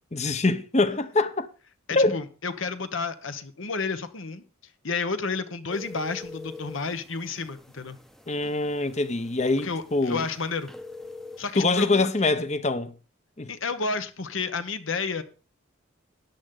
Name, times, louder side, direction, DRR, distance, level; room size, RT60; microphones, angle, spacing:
voice 1, 0.1-1.5 1.9-2.2 8.3-10.3 11.6-12.9 13.4-13.5, left 2 dB, 30° left, 0.8 m, -24 dB
voice 2, 1.9-4.4 4.8-8.0 9.6-10.7 11.4-12.1 13.5-15.2, left 4 dB, 65° left, 1.1 m, -31 dB
sound 1, 5.7-11.5, left 3 dB, ahead, 0.7 m, -45 dB
13.5 x 10.0 x 3.8 m
head